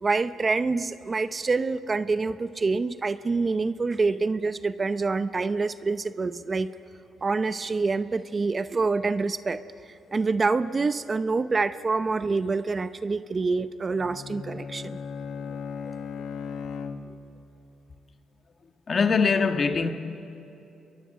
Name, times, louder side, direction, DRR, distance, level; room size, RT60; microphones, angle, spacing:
voice 1, 0.0-6.7 7.2-9.6 10.1-15.0, right 4 dB, 30° right, 0.6 m, -26 dB
Bowed string instrument, 13.9-17.5, left 5 dB, 70° left, 1.3 m, -37 dB
voice 2, 18.9-19.9, left 5 dB, 40° left, 1.5 m, -24 dB
27.5 x 22.5 x 6.6 m
cardioid pair, 90°, 0 cm